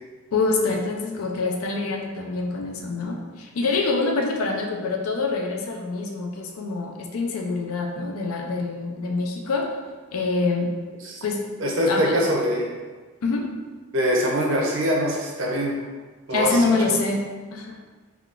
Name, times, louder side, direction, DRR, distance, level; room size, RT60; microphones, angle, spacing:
voice 1, 0.3-9.7 10.1-10.7 11.2-11.5 11.9-12.2 13.2-13.5 16.3-17.2 17.5-17.8, left 3 dB, 85° left, 1 dB, 0.4 m, -25 dB
voice 2, 11.6-12.7 13.9-15.8 16.3-16.6 16.9-17.0, equal, 60° right, -1 dB, 0.6 m, -23 dB
3.5 x 2.3 x 2.4 m, 1.4 s
head